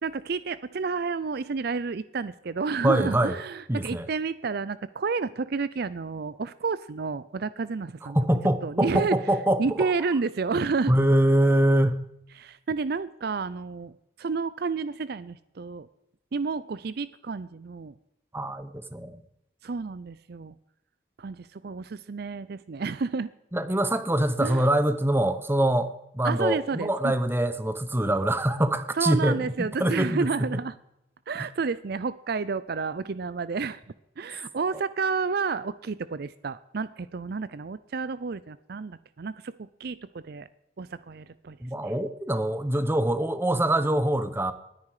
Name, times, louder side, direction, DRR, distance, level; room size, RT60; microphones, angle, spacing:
voice 1, 0.0-8.2 8.6-9.1 9.6-10.9 12.4-15.9 16.3-17.9 19.6-20.5 21.2-23.3 24.4-24.7 26.2-27.1 29.0-30.7 31.3-33.8 34.2-40.5 40.8-41.6 41.8-41.9, right 4 dB, 55° right, 16 dB, 0.5 m, -30 dB
voice 2, 2.8-3.4 3.7-4.1 8.0-9.9 10.9-12.0 18.3-19.2 23.5-30.3 41.6-44.5, right 1 dB, 10° right, 11 dB, 0.9 m, -24 dB
20.0 x 9.6 x 4.9 m, 0.85 s
head